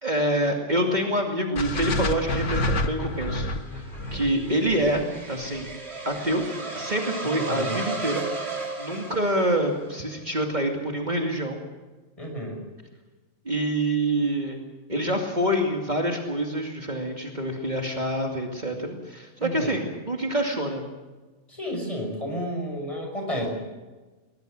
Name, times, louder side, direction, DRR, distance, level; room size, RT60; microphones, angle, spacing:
voice 1, 0.0-3.8 4.1-5.7 6.1-6.4 6.7-8.3 8.8-11.6 13.4-14.6 14.9-20.8, right 1 dB, 40° right, 1 dB, 2.6 m, -26 dB
sound 1, 1.6-5.7, left 1 dB, 80° left, 1.8 m, -29 dB
sound 2, 2.9-10.0, right 3 dB, 60° right, 3.4 m, -35 dB
voice 2, 7.2-7.9 12.2-12.6 19.4-19.9 21.5-23.5, equal, 30° left, 2 dB, 6.3 m, -32 dB
22.0 x 21.0 x 6.6 m, 1.2 s
omnidirectional pair, 1.2 m